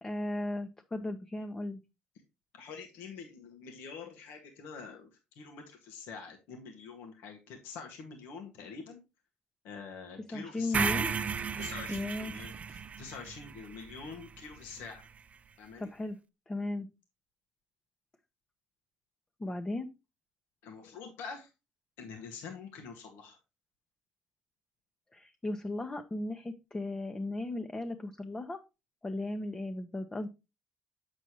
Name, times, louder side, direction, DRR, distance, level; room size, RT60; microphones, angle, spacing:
voice 1, 0.0-1.8 10.3-11.1 11.9-12.3 15.8-16.2 16.5-16.9 19.4-19.9 25.1-28.6 29.0-30.3, left 2 dB, 20° left, 7 dB, 1.0 m, -36 dB
voice 2, 2.5-5.1 5.4-9.0 9.6-10.9 11.6-15.1 15.6-15.9 20.6-21.5 22.0-23.4, left 5 dB, 75° left, 3 dB, 1.8 m, -46 dB
sound 1, 10.7-14.9, right 6 dB, 40° right, 0.6 m, -35 dB
8.1 x 7.1 x 3.0 m, 0.27 s
hypercardioid pair, 60°, 4 cm